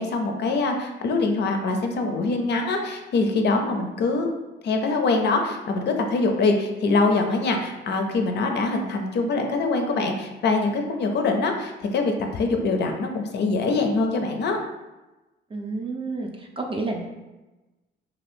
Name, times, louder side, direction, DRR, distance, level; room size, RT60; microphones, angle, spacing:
voice 1, 0.0-4.3 4.6-14.6, left 3 dB, 60° left, 4 dB, 0.5 m, -24 dB
voice 2, 15.5-17.0, right 3 dB, 25° right, 2 dB, 0.4 m, -30 dB
2.6 x 2.4 x 3.4 m, 1.1 s
cardioid pair, 90°, 20 cm